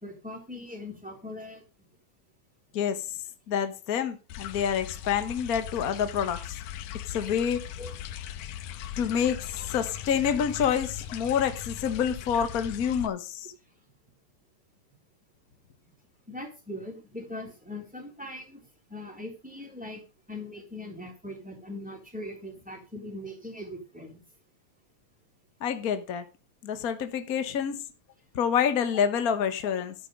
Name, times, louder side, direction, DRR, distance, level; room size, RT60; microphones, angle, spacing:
voice 1, 0.0-1.9 7.8-7.9 16.3-18.6 18.9-20.0 20.3-24.2 27.7-27.8, left 1 dB, 5° right, 3.4 m, -40 dB
voice 2, 3.5-6.6 7.1-7.6 9.0-13.5 25.6-26.2 26.6-27.8 28.3-29.9, left 8 dB, 65° left, 0.8 m, -27 dB
sound 1, 4.3-13.1, left 11 dB, 85° left, 2.4 m, -39 dB
12.5 x 8.7 x 5.1 m
omnidirectional pair, 3.5 m